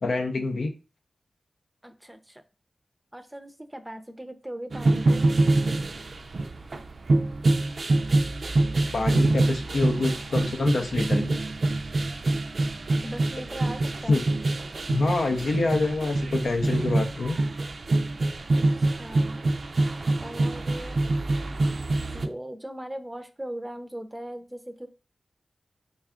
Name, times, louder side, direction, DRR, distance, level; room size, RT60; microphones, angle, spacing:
voice 1, 0.0-0.7 8.9-11.4 14.1-14.2 14.9-17.4, left 3 dB, 80° left, 4 dB, 0.6 m, -26 dB
voice 2, 1.8-2.4 3.1-5.3 13.0-14.2 18.6-19.4 20.2-21.0 22.1-24.9, right 1 dB, 15° right, 8 dB, 0.5 m, -39 dB
sound 1, 4.7-22.3, right 2 dB, 65° right, 0.4 m, -25 dB
3.4 x 2.3 x 3.6 m, 0.32 s
cardioid pair, 45°, 0 cm